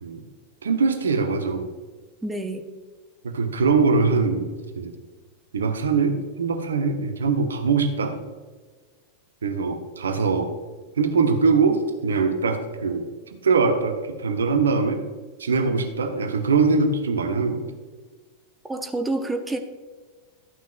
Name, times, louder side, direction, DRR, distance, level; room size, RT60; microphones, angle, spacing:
voice 1, 0.6-1.7 3.2-5.0 5.5-8.2 9.4-10.5 11.0-13.1 13.4-15.0 15.4-17.6, right 4 dB, 70° right, 7 dB, 0.8 m, -22 dB
voice 2, 2.2-2.6 18.7-19.6, right 2 dB, 10° right, 6 dB, 0.7 m, -28 dB
12.5 x 9.2 x 2.3 m, 1.4 s
figure-of-eight pair, 90°, 0 cm